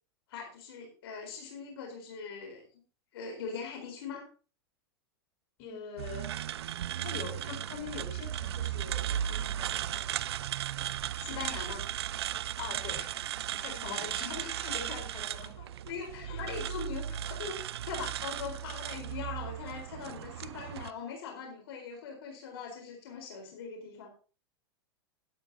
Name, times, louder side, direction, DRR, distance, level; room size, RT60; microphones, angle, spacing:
voice 1, 0.3-2.7 3.1-4.3 10.8-11.8 13.8-14.5 15.8-17.6 17.8-24.1, left 5 dB, 70° left, 2 dB, 4.3 m, -41 dB
voice 2, 5.6-6.4 7.0-10.0 12.6-15.7 16.2-16.4, left 6 dB, 50° left, 2 dB, 4.4 m, -44 dB
sound 1, 6.0-20.9, right 11 dB, 80° right, 0.5 m, -36 dB
12.5 x 11.5 x 2.8 m, 0.36 s
hypercardioid pair, 115°, 13 cm